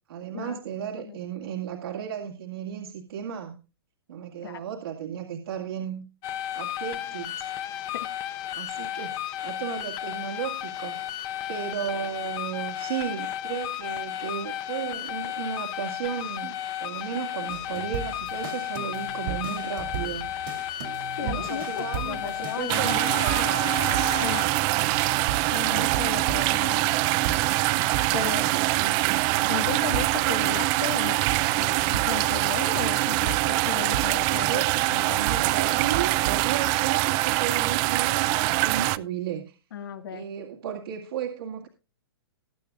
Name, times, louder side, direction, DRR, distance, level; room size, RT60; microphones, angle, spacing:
voice 1, 0.1-3.5 4.1-6.0 6.5-7.7 8.6-9.2 9.4-11.0 11.5-20.3 21.2-23.8 24.6-25.1 25.5-26.1 28.2-29.2 34.4-34.7 35.2-39.6 40.1-41.7, right 9 dB, 75° right, 0 dB, 2.2 m, -34 dB
sound 1, 6.2-24.4, left 12 dB, 30° left, 0.9 m, -33 dB
sound 2, 17.5-36.7, right 8 dB, 60° right, 2.2 m, -37 dB
voice 2, 21.2-23.2 24.2-24.5 25.5-26.8 28.1-28.5 29.5-31.2 31.6-34.6 34.9-35.2 39.7-40.3, left 8 dB, 70° left, 7 dB, 1.9 m, -35 dB
sound 3, 22.7-39.0, right 19 dB, 35° right, 0.5 m, -24 dB
20.5 x 8.9 x 2.5 m, 0.31 s
hypercardioid pair, 145°, 13 cm